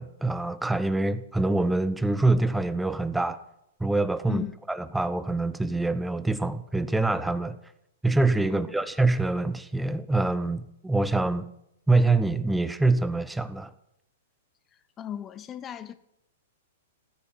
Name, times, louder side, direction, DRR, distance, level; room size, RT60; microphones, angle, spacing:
voice 1, 0.0-3.4 3.8-7.6 8.0-11.5 11.9-13.7, right 2 dB, 5° right, 0.8 m, -25 dB
voice 2, 15.0-15.9, left 10 dB, 25° left, 0.8 m, -35 dB
16.0 x 10.0 x 7.4 m
hypercardioid pair, 110°, 0 cm